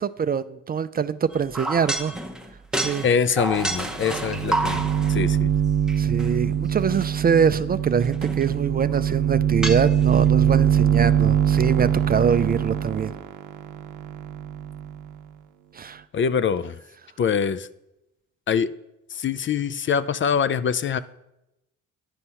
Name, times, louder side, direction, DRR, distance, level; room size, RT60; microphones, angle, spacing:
voice 1, 0.0-2.2 2.7-3.1 6.0-13.1 15.7-16.0, right 7 dB, 30° right, 13 dB, 0.4 m, -24 dB
sound 1, 1.3-5.2 5.9-6.3 6.9-7.1 8.0-8.6 8.9-9.0 9.6-10.2, right 1 dB, ahead, 0.9 m, -29 dB
voice 2, 3.0-5.5 16.1-16.7 17.2-17.7 18.5-18.7 19.1-21.0, left 7 dB, 40° left, 16 dB, 0.4 m, -24 dB
sound 2, 3.6-3.7 4.0-15.1, right 9 dB, 80° right, 0.7 m, -23 dB
9.9 x 6.1 x 5.6 m, 0.89 s
cardioid pair, 90°, 30 cm